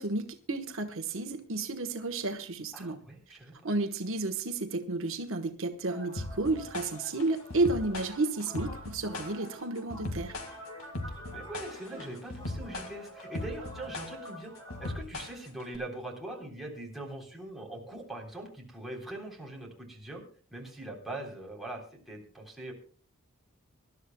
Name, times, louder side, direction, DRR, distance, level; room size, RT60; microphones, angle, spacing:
voice 1, 0.0-3.0 3.6-10.4, right 2 dB, 65° right, 6 dB, 1.2 m, -32 dB
voice 2, 2.7-3.5 11.3-14.5 14.8-20.2 20.5-22.7, right 1 dB, ahead, -2 dB, 3.6 m, -42 dB
sound 1, 5.9-15.0, equal, 20° left, 6.4 m, -47 dB
sound 2, 6.2-15.8, left 2 dB, 70° left, 2.0 m, -39 dB
24.5 x 12.0 x 2.2 m, 0.43 s
head